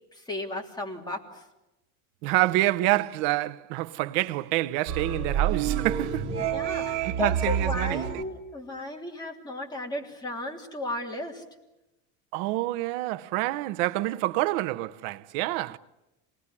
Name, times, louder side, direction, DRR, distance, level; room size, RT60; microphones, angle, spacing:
voice 1, 0.1-1.5 6.5-11.4, left 2 dB, 10° left, 3.2 m, -34 dB
voice 2, 2.2-6.3 7.0-8.0 12.3-15.8, right 17 dB, 90° right, 0.9 m, -27 dB
sound 1, 4.9-8.2, right 8 dB, 55° right, 2.6 m, -28 dB
27.0 x 20.0 x 9.8 m
cardioid pair, 150°, 36 cm